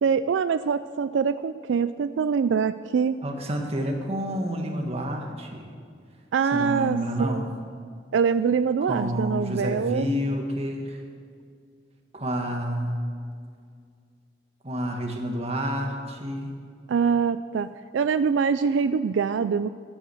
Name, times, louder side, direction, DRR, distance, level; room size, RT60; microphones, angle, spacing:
voice 1, 0.0-3.2 6.3-7.5 8.1-10.1 16.9-19.7, right 6 dB, 80° right, 13 dB, 0.3 m, -24 dB
voice 2, 3.2-5.7 6.5-7.5 8.8-11.0 12.1-13.0 14.6-16.5, equal, 35° right, 2 dB, 1.7 m, -29 dB
13.0 x 8.6 x 7.8 m, 2.2 s
head